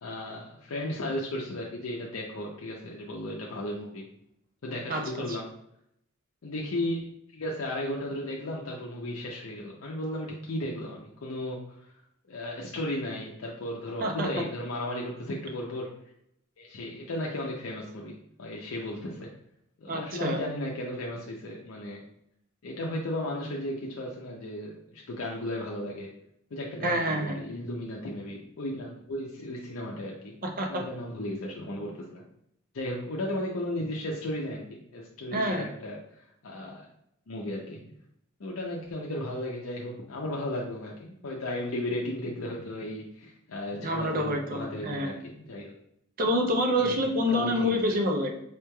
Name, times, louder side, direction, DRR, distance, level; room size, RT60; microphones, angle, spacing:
voice 1, 0.0-4.0 4.6-5.5 6.4-7.0 7.3-11.9 12.3-15.9 16.6-19.3 19.8-22.0 22.6-26.1 26.5-30.3 30.7-32.2 32.7-36.9 37.3-37.9 38.4-45.7 46.8-47.0 47.3-48.0, left 1 dB, 70° left, -2 dB, 0.5 m, -35 dB
voice 2, 4.9-5.4 14.0-14.3 19.9-20.4 26.8-27.4 30.4-30.8 35.3-35.7 43.8-45.2 46.2-48.4, equal, 45° right, 3 dB, 0.6 m, -27 dB
4.9 x 3.1 x 2.2 m, 0.75 s
head